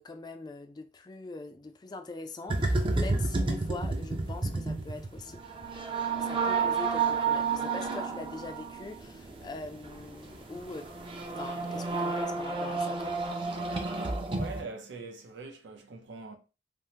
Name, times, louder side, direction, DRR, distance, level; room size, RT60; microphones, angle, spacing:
voice 1, 0.0-5.4 6.2-10.9 11.4-13.1, left 3 dB, 25° left, 0.3 m, -42 dB
sound 1, 2.5-14.6, right 4 dB, 30° right, 0.5 m, -31 dB
voice 2, 14.3-16.4, right 3 dB, 80° right, 0.6 m, -43 dB
3.4 x 2.1 x 2.8 m
head